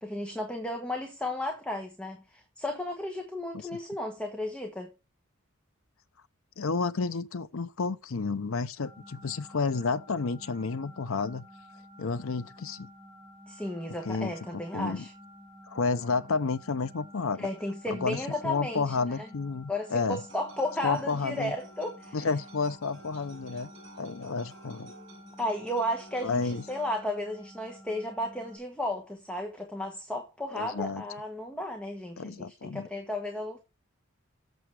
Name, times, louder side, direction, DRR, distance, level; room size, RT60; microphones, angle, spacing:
voice 1, 0.0-4.9 13.5-15.1 17.4-19.3 19.7-22.2 25.4-33.6, left 1 dB, 5° left, 1.2 m, -34 dB
voice 2, 6.6-11.4 12.0-12.9 14.0-14.3 14.7-15.1 15.7-17.5 17.9-20.2 20.8-21.5 22.1-23.7 24.0-24.9 26.2-26.6 30.5-31.0 32.2-32.9, left 4 dB, 85° left, 0.7 m, -31 dB
sound 1, 8.8-28.6, left 1 dB, 10° right, 3.5 m, -51 dB
sound 2, 20.3-26.9, right 2 dB, 60° right, 4.5 m, -52 dB
7.8 x 6.7 x 4.8 m
head